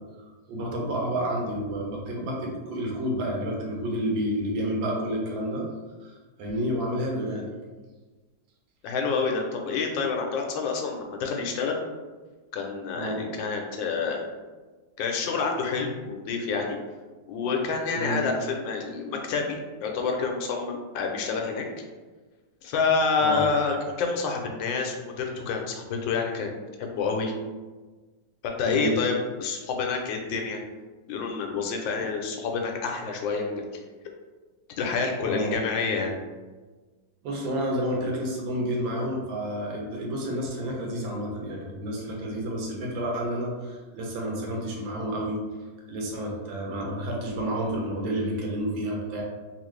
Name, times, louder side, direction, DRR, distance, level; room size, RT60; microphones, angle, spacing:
voice 1, 0.5-5.7 6.0-7.5 12.9-13.2 17.9-18.2 23.2-23.5 28.6-28.9 35.2-35.6 37.2-45.4 45.9-49.2, right 1 dB, 85° right, -1 dB, 1.5 m, -30 dB
voice 2, 8.8-11.8 12.5-14.2 15.0-16.8 17.3-21.7 22.6-26.5 26.8-27.3 28.4-30.6 31.1-33.6 34.8-36.1, left 5 dB, 80° left, 2 dB, 1.3 m, -28 dB
3.4 x 2.5 x 3.1 m, 1.3 s
omnidirectional pair, 2.0 m